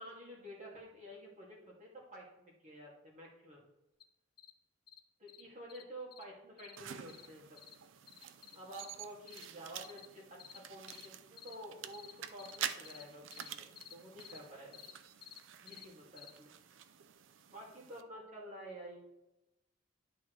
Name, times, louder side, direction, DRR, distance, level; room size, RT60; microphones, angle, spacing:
voice 1, 0.0-3.7 5.2-7.6 8.5-14.8 15.6-16.5 17.5-19.0, right 1 dB, 40° right, -3 dB, 2.2 m, -50 dB
sound 1, 4.0-4.1 4.4-4.5 4.9-5.0 5.3-5.4 5.7-5.8 6.1-6.2 6.6-6.8 7.1-7.3 7.6-7.7 8.1-8.9 9.3-9.4 9.8-10.1 10.4-10.6 10.9-11.1 11.4-11.5 11.9-12.1 12.4-12.6 12.8-13.0 13.3-13.5 13.8-13.9 14.2-14.4 14.7-14.9 15.2-15.4 15.7-15.8 16.2-16.3, left 10 dB, 50° left, 0.6 m, -52 dB
sound 2, 6.8-18.0, right 9 dB, 80° right, 0.5 m, -48 dB
10.5 x 6.0 x 3.2 m, 0.96 s
head